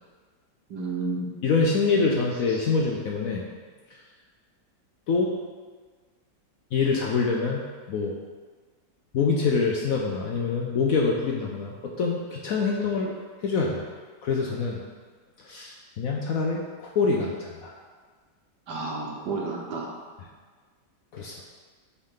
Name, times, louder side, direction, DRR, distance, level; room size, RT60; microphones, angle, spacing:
voice 1, 0.7-1.3 18.7-19.9, right 3 dB, 65° right, -1 dB, 1.5 m, -31 dB
voice 2, 1.4-3.4 5.1-5.3 6.7-8.1 9.1-13.1 13.4-13.8 14.2-14.8 15.4-17.7 21.1-21.4, left 4 dB, 65° left, -1 dB, 0.9 m, -25 dB
8.0 x 3.9 x 3.8 m, 1.5 s
omnidirectional pair, 1.9 m